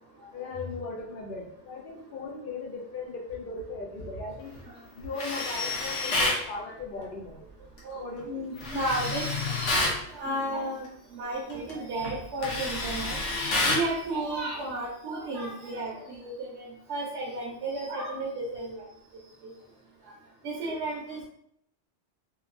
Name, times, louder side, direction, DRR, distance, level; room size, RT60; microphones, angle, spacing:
voice 1, 0.3-4.5 5.0-7.4 7.9-8.5 20.6-20.7, left 3 dB, 60° left, -1 dB, 0.6 m, -38 dB
Tools, 5.2-6.4 8.6-10.0 11.5-11.7 12.0-13.9, left 2 dB, 90° left, 1.0 m, -28 dB
voice 2, 6.5-7.0 7.8-9.6 10.1-10.9 11.1-13.2 13.6-18.9 20.4-21.2, right 1 dB, 75° right, -4 dB, 0.9 m, -33 dB
2.8 x 2.3 x 2.4 m, 0.71 s
omnidirectional pair, 1.2 m